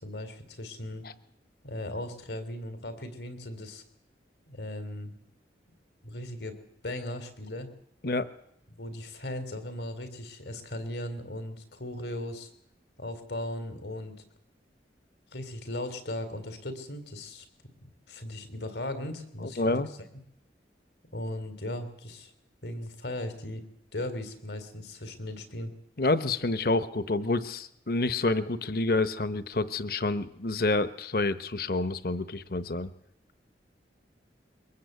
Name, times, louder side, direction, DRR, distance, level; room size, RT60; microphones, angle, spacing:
voice 1, 0.0-1.1 1.6-3.8 4.5-5.2 6.0-6.6 6.8-7.7 8.8-12.5 13.0-14.1 15.3-17.5 17.8-19.8 21.1-22.3 22.6-23.7 23.9-25.7, left 1 dB, 75° left, 10 dB, 3.8 m, -37 dB
voice 2, 19.4-19.9 26.0-32.9, left 2 dB, 55° left, 13 dB, 1.0 m, -28 dB
23.0 x 20.5 x 8.2 m, 0.75 s
head